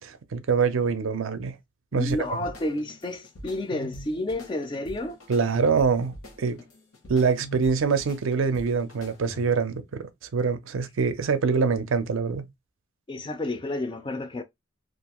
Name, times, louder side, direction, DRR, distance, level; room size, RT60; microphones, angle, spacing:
voice 1, 0.0-1.5 1.9-2.2 5.3-6.6 7.1-12.4, right 5 dB, 70° right, 0.4 m, -25 dB
voice 2, 1.9-5.2 13.1-14.4, left 1 dB, 25° left, 0.3 m, -30 dB
sound 1, 2.1-9.7, equal, 85° left, 0.9 m, -44 dB
2.5 x 2.3 x 2.9 m
head